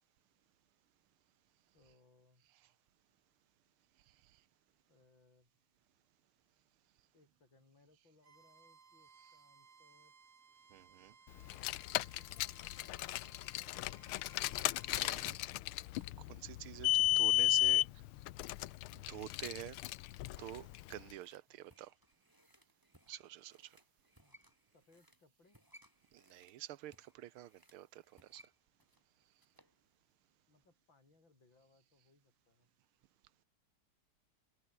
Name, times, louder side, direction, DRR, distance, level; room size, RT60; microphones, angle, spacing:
voice 1, 1.7-2.4 4.9-5.5 7.1-10.1 12.2-14.2 21.5-21.7 24.2-24.4 24.7-25.6 30.5-32.7, left 3 dB, 60° left, 7.1 m, -69 dB
Bowed string instrument, 8.2-15.3, right 5 dB, 45° right, 2.7 m, -63 dB
voice 2, 10.7-11.2 14.9-15.4 16.2-17.9 18.9-19.8 20.4-21.9 23.1-23.8 26.1-28.4, right 14 dB, 85° right, 1.7 m, -48 dB
Car, 11.4-20.9, left 16 dB, 85° left, 1.6 m, -34 dB
sound 1, 20.4-29.8 30.1-30.2, equal, 10° right, 7.8 m, -66 dB
omnidirectional pair, 2.3 m